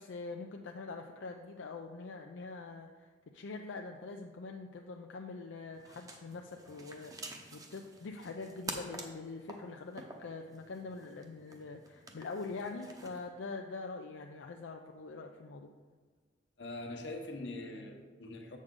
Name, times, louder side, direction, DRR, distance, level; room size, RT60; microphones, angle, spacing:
voice 1, 0.0-3.1 3.3-15.7, left 3 dB, 85° left, 3 dB, 0.5 m, -44 dB
sound 1, 5.7-13.3, right 2 dB, 20° right, 0.7 m, -49 dB
voice 2, 16.6-18.6, left 2 dB, 65° left, 3 dB, 1.0 m, -43 dB
7.6 x 6.4 x 3.7 m, 1.5 s
head